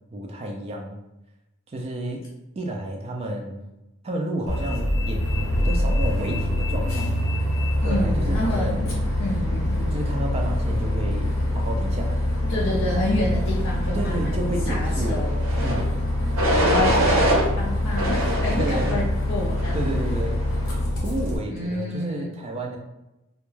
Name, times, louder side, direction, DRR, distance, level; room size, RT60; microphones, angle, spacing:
voice 1, 0.1-1.0 1.7-2.3 2.6-3.6 4.0-5.3 5.6-7.1 7.8-9.0 9.9-12.2 13.2-13.3 13.9-15.9 18.5-19.0 19.7-20.4 21.0-22.8, right 1 dB, 30° right, 1 dB, 0.3 m, -31 dB
Bus, 4.5-21.4, left 1 dB, 80° left, 0.9 m, -25 dB
voice 2, 7.8-10.1 12.5-15.6 16.6-19.9 21.5-22.3, left 1 dB, 60° left, -4 dB, 0.4 m, -29 dB
sound 1, 15.4-15.8 16.4-17.4 18.0-19.0 19.6-20.0, right 1 dB, 70° right, 0.6 m, -23 dB
2.2 x 2.1 x 3.0 m, 0.93 s
head